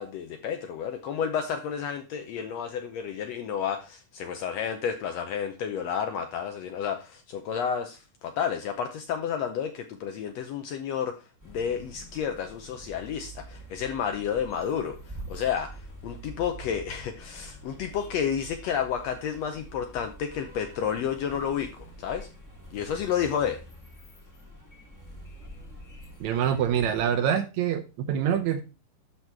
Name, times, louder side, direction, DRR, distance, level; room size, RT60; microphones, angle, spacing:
voice 1, 0.0-11.1 11.4-22.3 22.7-23.6, left 8 dB, 75° left, 7 dB, 1.6 m, -31 dB
sound 1, 11.4-27.2, right 1 dB, 10° left, 1.4 m, -46 dB
voice 2, 26.2-28.6, right 9 dB, 75° right, 8 dB, 1.8 m, -25 dB
12.0 x 4.2 x 4.5 m, 0.30 s
omnidirectional pair, 3.7 m